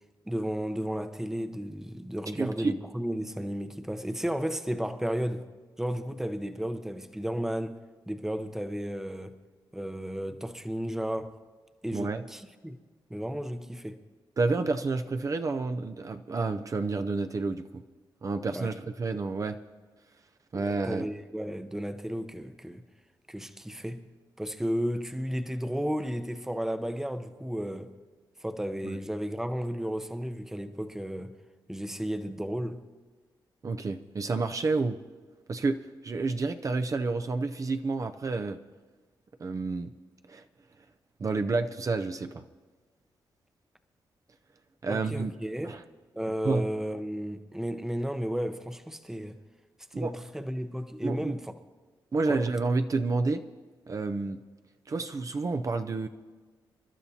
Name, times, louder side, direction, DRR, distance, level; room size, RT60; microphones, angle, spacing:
voice 1, 0.3-5.5 5.8-7.8 8.1-9.4 9.7-11.4 11.8-12.8 13.1-14.0 18.5-18.7 20.5-22.8 23.3-24.1 24.4-27.9 28.4-31.3 31.7-32.9 44.9-45.8 46.1-49.3 50.0-51.5 52.3-52.4, equal, 5° right, 0.8 m, -33 dB
voice 2, 2.4-2.7 11.9-12.2 14.4-17.8 18.2-19.6 20.5-21.0 28.8-29.0 33.6-35.0 35.5-38.6 39.4-39.9 40.3-40.4 41.2-42.4 44.8-45.3 45.6-45.8 46.4-46.7 49.9-50.2 51.0-51.4 52.1-53.4 53.9-54.4 54.9-56.1, right 3 dB, 40° right, 0.6 m, -29 dB
28.5 x 12.0 x 2.8 m
cardioid pair, 85°, 8 cm